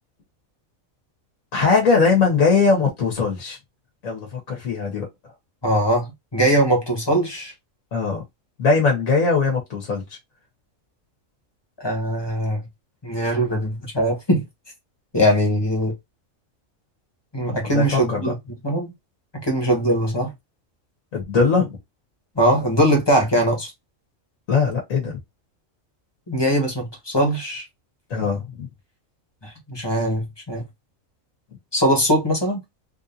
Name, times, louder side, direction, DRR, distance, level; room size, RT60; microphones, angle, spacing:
voice 1, 1.5-3.6 4.0-5.1 7.9-8.2 8.6-10.0 17.6-18.2 21.1-21.8 24.5-25.2 28.1-28.7, left 4 dB, 80° left, 1.6 m, -20 dB
voice 2, 5.6-7.5 11.8-12.7 13.0-14.4 15.1-15.9 17.3-18.4 18.6-18.9 19.3-20.3 22.3-23.7 26.3-27.6 29.4-30.6 31.7-32.6, equal, 20° left, 1.2 m, -21 dB
3.6 x 2.6 x 2.6 m
omnidirectional pair, 1.4 m